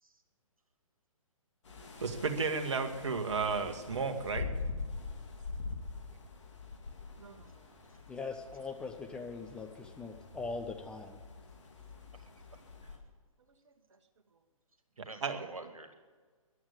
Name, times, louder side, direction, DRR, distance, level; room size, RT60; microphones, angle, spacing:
sound 1, 1.6-13.0, left 4 dB, 55° left, 2.8 m, -44 dB
voice 1, 2.0-4.5 7.2-7.4 15.2-15.5, right 4 dB, 55° right, 6 dB, 1.8 m, -33 dB
voice 2, 8.1-11.2, left 4 dB, 5° left, 4 dB, 0.5 m, -41 dB
voice 3, 12.1-13.0 15.0-15.9, right 2 dB, 75° right, 8 dB, 2.1 m, -50 dB
14.5 x 11.0 x 8.3 m, 1.4 s
figure-of-eight pair, 130°, 18 cm